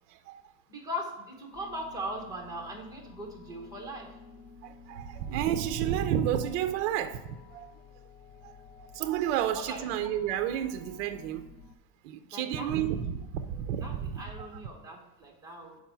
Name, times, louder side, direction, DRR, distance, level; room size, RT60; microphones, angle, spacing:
voice 1, 0.1-0.4 4.6-7.7 8.4-8.5 8.9-11.5 12.0-14.5, right 10 dB, 50° right, 9 dB, 0.5 m, -31 dB
voice 2, 0.7-4.1 9.3-9.8 12.2-12.7 13.8-15.8, equal, 10° right, -1 dB, 1.0 m, -39 dB
sound 1, 1.5-11.7, left 4 dB, 40° left, 0.9 m, -52 dB
5.8 x 4.7 x 5.6 m, 1.0 s
cardioid pair, 170°, 47 cm